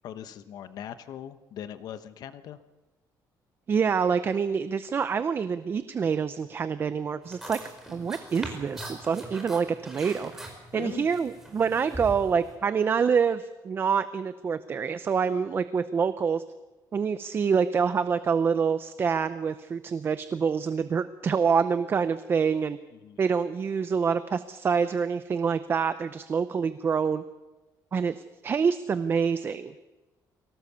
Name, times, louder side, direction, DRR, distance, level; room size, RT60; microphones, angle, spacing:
voice 1, 0.0-2.6 10.7-11.1 22.9-23.2, left 10 dB, 60° left, 11 dB, 1.1 m, -40 dB
voice 2, 3.7-7.6 7.9-10.5 10.7-16.4 16.9-22.8 23.2-27.2 27.9-29.7, right 6 dB, 30° right, 12 dB, 0.7 m, -26 dB
sound 1, 7.2-12.6, right 1 dB, 5° right, 5.0 m, -41 dB
23.5 x 18.0 x 6.9 m, 1.1 s
cardioid pair, 155°, 7 cm